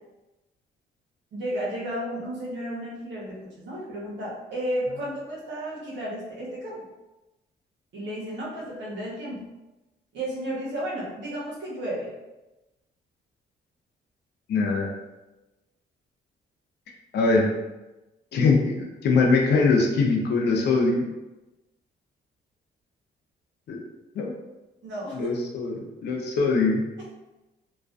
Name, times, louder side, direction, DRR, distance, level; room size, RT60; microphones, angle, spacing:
voice 1, 1.3-6.8 7.9-9.4 10.1-12.1 24.8-25.3, right 1 dB, 75° right, -5 dB, 0.7 m, -33 dB
voice 2, 14.5-14.9 17.1-17.5 18.3-21.1 23.7-23.8 24.2-24.3 25.1-25.7 26.0-26.8, left 3 dB, 65° left, 1 dB, 0.5 m, -22 dB
2.3 x 2.1 x 2.4 m, 1.0 s
cardioid pair, 75°, 19 cm